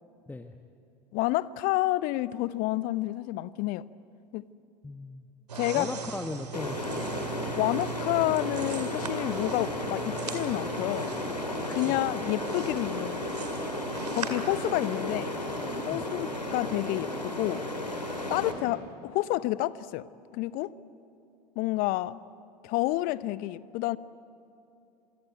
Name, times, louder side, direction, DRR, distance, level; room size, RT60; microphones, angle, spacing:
voice 1, 1.1-3.8 4.3-4.5 5.6-6.0 7.6-11.1 11.7-13.3 14.1-15.4 15.9-17.6 18.3-20.1 20.3-20.7 21.6-22.2 22.6-24.0, left 17 dB, 45° left, 18 dB, 0.8 m, -29 dB
voice 2, 4.8-5.3 5.7-7.0 11.9-12.0 15.9-16.0, left 2 dB, 10° left, 7 dB, 1.1 m, -37 dB
sound 1, 5.5-14.3, right 7 dB, 75° right, 2.3 m, -41 dB
sound 2, 6.5-18.5, left 1 dB, 90° left, 2.9 m, -33 dB
26.5 x 23.5 x 9.3 m, 2.7 s
figure-of-eight pair, 80°, 21 cm